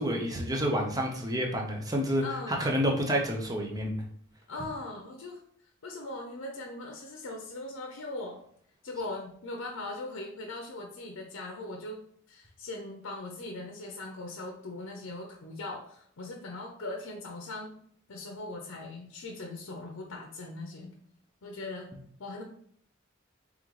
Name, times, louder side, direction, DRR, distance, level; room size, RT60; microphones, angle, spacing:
voice 1, 0.0-4.0, equal, 20° right, 1 dB, 0.6 m, -29 dB
voice 2, 2.2-2.7 4.5-5.4 5.8-8.4 8.8-17.7 18.1-20.9 21.4-21.9 22.2-22.4, left 2 dB, 85° left, 1 dB, 0.6 m, -40 dB
3.8 x 3.5 x 3.1 m, 0.63 s
head